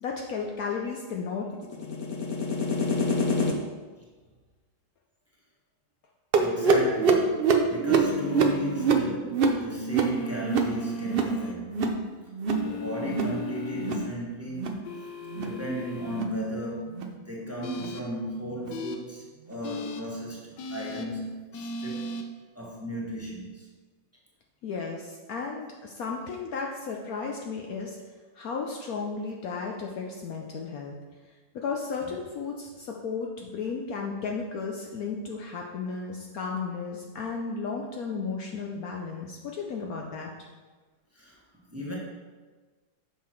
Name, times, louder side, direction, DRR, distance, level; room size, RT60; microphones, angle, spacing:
voice 1, 0.0-3.5 24.6-28.0 28.4-31.0 31.5-40.3, left 4 dB, 65° left, 0 dB, 1.0 m, -32 dB
voice 2, 6.3-11.8 12.6-14.9 15.3-16.9 17.2-22.1 22.5-23.6 32.0-32.1 41.1-41.4 41.7-41.9, right 1 dB, 10° right, -4 dB, 1.3 m, -36 dB
sound 1, 6.3-11.4 11.6-12.0 12.3-12.7 13.0-13.4 13.7-14.1 14.5-14.8 15.3-15.6 16.1-16.3 16.9-17.1 17.8-17.9 18.6-18.7 19.5-19.6, right 4 dB, 80° right, 0.5 m, -25 dB
sound 2, 7.9-9.1 10.0-11.5 12.5-14.1 14.8-16.2 17.6-18.0 18.7-19.0 19.6-20.0 20.6-21.1 21.5-22.2, left 2 dB, 80° left, 1.4 m, -36 dB
7.3 x 5.7 x 4.4 m, 1.4 s
omnidirectional pair, 1.9 m